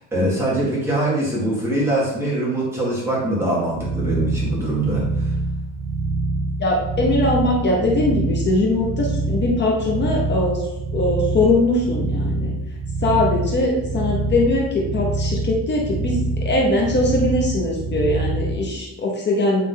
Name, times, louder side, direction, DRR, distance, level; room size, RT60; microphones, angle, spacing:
voice 1, 0.1-5.3, right 1 dB, 5° right, -7 dB, 1.8 m, -23 dB
sound 1, 3.7-18.6, right 2 dB, 30° right, 1.0 m, -25 dB
voice 2, 6.6-10.6 10.9-12.5 13.0-19.6, left 2 dB, 25° left, -1 dB, 0.8 m, -21 dB
8.4 x 3.2 x 3.8 m, 0.89 s
cardioid pair, 175°, 44 cm